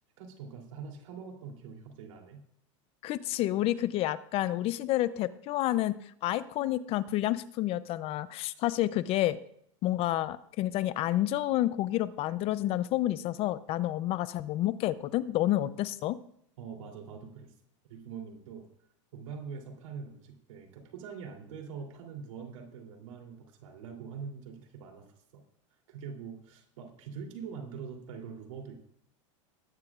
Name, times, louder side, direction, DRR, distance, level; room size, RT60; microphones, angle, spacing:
voice 1, 0.2-2.4 16.6-17.5 17.9-18.6 19.1-25.4 25.9-28.8, right 6 dB, 80° right, 2 dB, 3.1 m, -44 dB
voice 2, 3.0-6.0 6.2-9.4 9.8-16.2, left 14 dB, 35° left, 15 dB, 0.5 m, -29 dB
19.5 x 9.6 x 2.4 m, 0.68 s
supercardioid pair, 140°, 17 cm